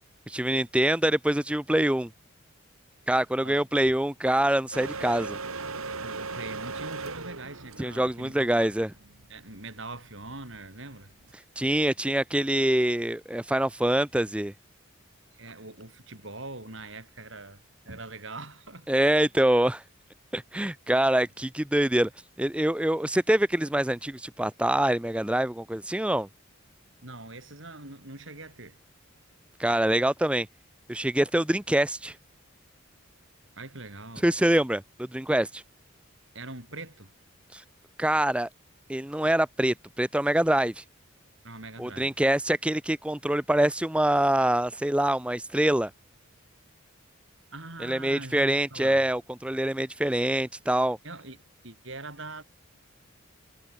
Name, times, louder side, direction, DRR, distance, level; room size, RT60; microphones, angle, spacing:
voice 1, 0.3-2.1 3.1-5.4 7.8-8.9 11.6-14.5 18.9-19.8 20.3-22.1 22.4-26.3 29.6-30.5 30.9-32.2 34.2-35.6 37.5-37.6 38.0-38.5 38.9-40.8 41.8-45.9 47.8-51.0, right 1 dB, 5° right, 0.5 m, -25 dB
sound 1, 4.7-11.3, right 4 dB, 90° right, 3.3 m, -38 dB
voice 2, 6.0-8.7 9.3-11.1 15.3-17.6 17.9-19.0 27.0-28.8 33.6-34.3 36.3-37.1 41.4-42.1 47.5-49.0 51.0-51.4 51.6-52.4, right 2 dB, 60° right, 6.0 m, -42 dB
head